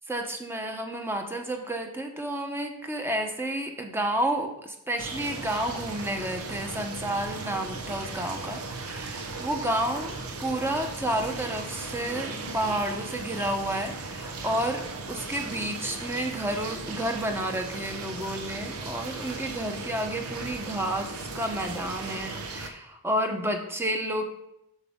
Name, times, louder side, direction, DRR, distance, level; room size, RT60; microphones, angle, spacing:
voice 1, 0.1-10.1 10.4-14.8 15.1-24.2, right 1 dB, 10° right, 4 dB, 0.9 m, -30 dB
sound 1, 5.0-22.7, right 3 dB, 85° right, 0.9 m, -37 dB
8.1 x 7.0 x 3.6 m, 0.83 s
head